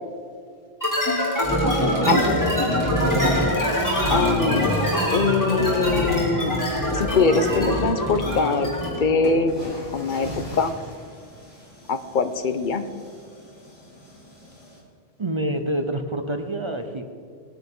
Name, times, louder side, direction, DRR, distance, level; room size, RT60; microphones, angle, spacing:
sound 1, 0.8-9.1, equal, 15° left, 2.5 m, -23 dB
voice 1, 3.2-3.6 15.2-17.1, right 1 dB, 30° right, 6 dB, 0.7 m, -28 dB
voice 2, 4.1-4.8 5.1-6.6 6.9-8.7 9.0-9.5 9.9-10.7 11.9-12.8, left 4 dB, 55° left, 9 dB, 0.8 m, -22 dB
sound 2, 8.4-8.6 9.2-14.8, equal, 80° left, 3.1 m, -40 dB
20.0 x 9.4 x 3.7 m, 2.2 s
omnidirectional pair, 1.1 m